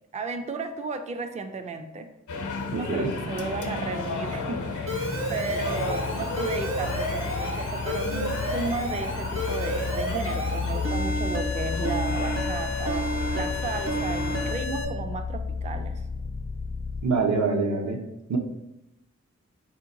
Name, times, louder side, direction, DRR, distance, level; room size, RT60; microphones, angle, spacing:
voice 1, 0.1-2.1 2.7-16.0, right 3 dB, 25° right, 7 dB, 0.4 m, -34 dB
sound 1, 2.3-14.5, left 4 dB, 90° left, 0.6 m, -35 dB
sound 2, 2.3-17.1, left 4 dB, 40° left, 0.4 m, -33 dB
voice 2, 2.7-3.1 17.0-18.0 18.3-18.4, right 4 dB, 65° right, 2 dB, 0.8 m, -25 dB
Alarm, 4.9-14.8, equal, 45° right, 1.1 m, -31 dB
4.3 x 2.8 x 3.8 m, 0.90 s
wide cardioid pair, 75°, 30 cm